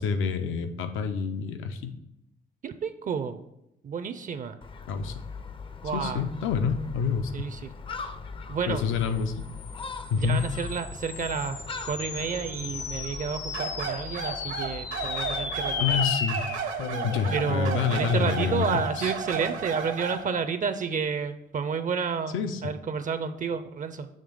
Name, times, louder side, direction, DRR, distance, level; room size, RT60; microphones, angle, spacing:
voice 1, 0.0-1.9 4.9-5.1 5.9-7.3 8.7-9.3 10.1-10.4 15.8-16.4 17.0-19.1 22.3-22.6, left 6 dB, 85° left, 7 dB, 0.6 m, -27 dB
voice 2, 2.6-3.4 3.8-4.6 5.8-6.2 7.3-7.7 8.5-8.8 10.1-16.0 17.3-22.4 22.6-24.1, right 6 dB, 40° right, 10 dB, 0.4 m, -30 dB
Gull seagull, 4.6-16.0, left 5 dB, 25° left, 0.4 m, -41 dB
sound 1, 9.3-20.0, left 5 dB, 60° left, 0.9 m, -36 dB
sound 2, 13.5-20.3, right 5 dB, 80° right, 0.9 m, -33 dB
6.6 x 3.2 x 5.1 m, 0.84 s
cardioid pair, 90°, 20 cm